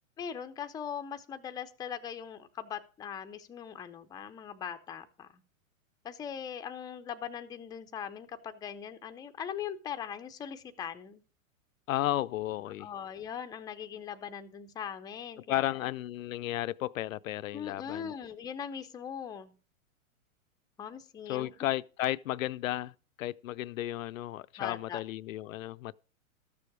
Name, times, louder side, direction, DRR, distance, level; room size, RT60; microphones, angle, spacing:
voice 1, 0.2-5.4 6.0-11.2 12.8-15.6 17.5-19.5 20.8-21.5 24.6-25.0, left 8 dB, 10° left, 0.5 m, -40 dB
voice 2, 11.9-12.9 15.5-18.1 21.3-22.9 23.2-26.0, left 14 dB, 70° left, 0.5 m, -33 dB
13.5 x 6.9 x 4.8 m
hypercardioid pair, 120°, 41 cm